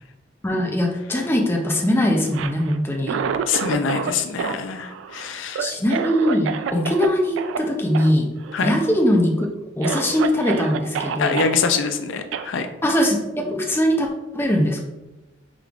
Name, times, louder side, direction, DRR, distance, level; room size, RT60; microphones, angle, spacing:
voice 1, 0.4-3.2 5.6-8.3 8.6-9.4 9.8-11.4 12.8-14.1 14.3-14.8, equal, 10° left, 1 dB, 0.5 m, -21 dB
Cough, 2.2-4.1 4.4-7.1 7.4-7.6 7.9-8.1 8.4-8.9 9.4-9.5 9.8-11.6 12.3-12.5, right 6 dB, 90° right, 0.3 m, -28 dB
voice 2, 3.5-5.6 6.7-6.9 8.5-8.7 11.2-12.7, left 5 dB, 85° left, 7 dB, 0.4 m, -24 dB
5.0 x 3.3 x 2.4 m, 1.0 s
head